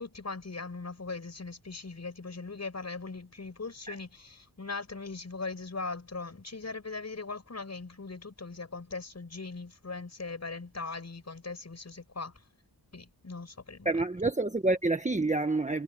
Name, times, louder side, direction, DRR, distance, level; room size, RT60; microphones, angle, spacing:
voice 1, 0.0-12.3 12.9-14.0, left 3 dB, 40° left, 6.0 m, -40 dB
voice 2, 13.8-15.8, right 2 dB, 20° right, 1.5 m, -28 dB
wide cardioid pair, 80°, 40 cm